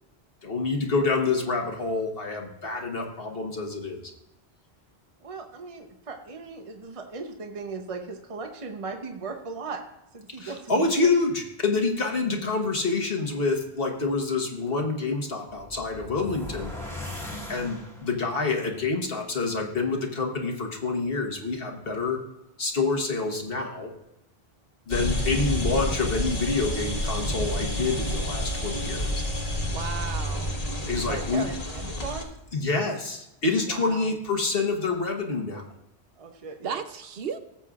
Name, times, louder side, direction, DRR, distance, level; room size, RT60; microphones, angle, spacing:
voice 1, 0.4-4.1 10.4-16.7 17.5-22.2 22.6-23.9 24.9-29.2 30.9-31.4 32.5-35.6, left 3 dB, 65° left, 2 dB, 1.5 m, -27 dB
voice 2, 5.2-9.8 10.1-10.9 30.8-32.3 36.2-36.8, right 4 dB, 35° right, 4 dB, 0.9 m, -37 dB
sound 1, 15.5-18.3, left 1 dB, ahead, 1.7 m, -38 dB
sound 2, 24.9-32.2, left 1 dB, 35° left, 1.4 m, -29 dB
voice 3, 29.6-30.6 33.7-34.1 36.6-37.4, right 6 dB, 65° right, 9 dB, 0.9 m, -35 dB
17.5 x 7.5 x 2.4 m, 0.89 s
omnidirectional pair, 1.1 m